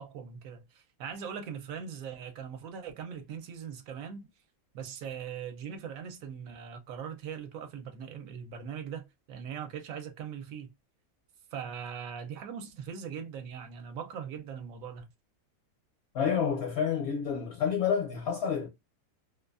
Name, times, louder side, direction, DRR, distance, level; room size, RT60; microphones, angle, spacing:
voice 1, 0.0-4.2 4.7-10.7 11.5-15.1, right 7 dB, 75° right, 1.0 m, -40 dB
voice 2, 16.1-18.7, left 7 dB, 65° left, 0.7 m, -29 dB
2.5 x 2.3 x 2.3 m
omnidirectional pair, 1.5 m